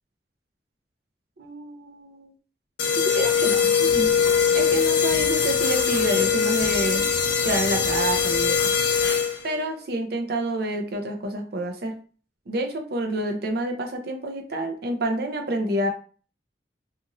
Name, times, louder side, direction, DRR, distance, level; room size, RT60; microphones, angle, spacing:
voice 1, 1.4-2.3 3.0-4.1 4.5-7.1 7.4-8.7 9.4-12.0 12.5-15.9, right 1 dB, 55° right, 4 dB, 0.6 m, -28 dB
sound 1, 2.8-9.6, left 7 dB, 75° left, 0.5 m, -22 dB
2.5 x 2.5 x 2.9 m, 0.40 s
head